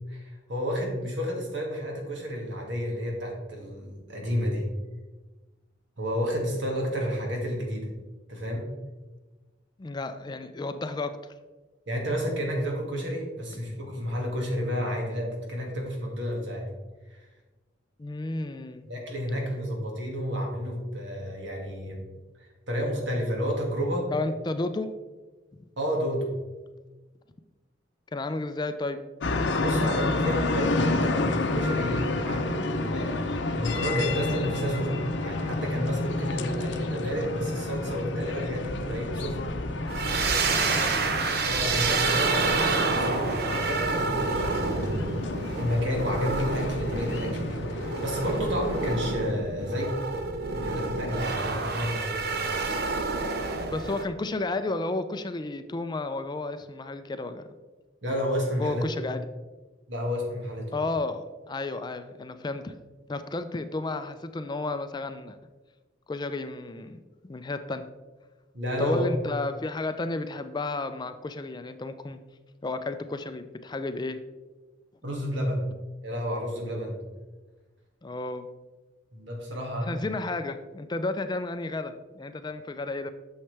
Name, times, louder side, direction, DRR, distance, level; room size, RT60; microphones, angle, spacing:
voice 1, 0.1-4.6 6.0-7.9 8.3-8.6 11.9-16.7 17.1-17.2 18.9-22.0 22.4-24.1 25.8-26.3 29.6-33.2 33.5-39.5 41.5-45.2 45.6-49.9 50.5-52.4 58.0-58.8 59.9-60.8 68.5-69.1 75.0-75.6 76.0-77.0 79.1-80.1, equal, 75° right, 0 dB, 2.1 m, -31 dB
voice 2, 9.8-11.3 18.0-18.9 24.1-24.9 25.5-25.6 28.1-29.0 40.3-40.9 53.7-57.4 58.6-59.2 60.7-62.7 63.1-65.4 66.1-67.9 68.8-72.2 72.6-74.2 78.0-78.5 79.8-83.1, left 2 dB, 25° left, 10 dB, 0.4 m, -32 dB
sound 1, 29.2-49.0, left 2 dB, 65° left, 0.7 m, -30 dB
sound 2, 39.9-54.0, right 3 dB, 55° right, 0.8 m, -28 dB
8.6 x 6.5 x 3.3 m, 1.2 s
head